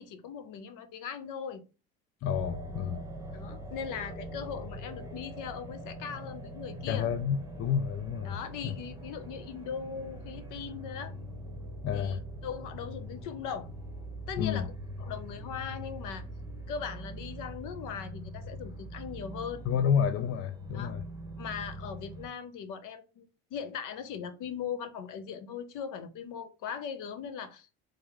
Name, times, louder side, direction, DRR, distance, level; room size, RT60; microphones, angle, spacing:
voice 1, 0.0-1.6 3.3-7.1 8.2-11.1 11.9-13.7 14.3-14.7 15.0-16.2 16.7-19.6 20.7-20.9 21.4-27.7, left 7 dB, 60° left, 0.9 m, -39 dB
voice 2, 2.2-3.0 6.9-8.3 8.6-8.8 11.8-12.2 14.4-14.7 19.6-21.0, left 8 dB, 40° left, 0.4 m, -29 dB
sound 1, 2.3-22.3, right 1 dB, 10° right, 1.1 m, -43 dB
3.5 x 3.0 x 3.5 m
supercardioid pair, 90°, 36 cm